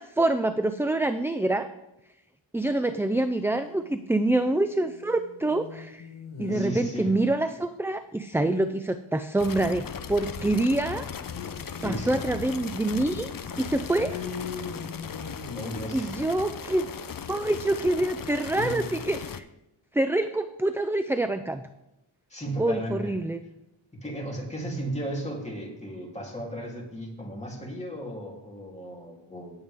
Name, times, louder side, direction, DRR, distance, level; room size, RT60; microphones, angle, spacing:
voice 1, 0.0-1.7 2.5-6.1 6.4-11.1 11.8-13.3 13.6-14.2 15.9-16.9 17.3-19.5 19.9-21.6 22.6-23.4, right 2 dB, 5° right, 10 dB, 0.4 m, -26 dB
sound 1, 3.4-4.1 4.4-7.5 11.2-16.5, left 5 dB, 85° left, 1.7 m, -41 dB
voice 2, 6.5-7.1 11.8-12.3 14.1-14.2 15.5-16.1 18.5-18.8 22.3-23.2 24.0-29.5, equal, 15° left, -2 dB, 3.2 m, -35 dB
sound 2, 9.4-19.4, left 7 dB, 45° left, 0.7 m, -38 dB
17.0 x 8.1 x 3.6 m, 0.88 s
wide cardioid pair, 80°, 49 cm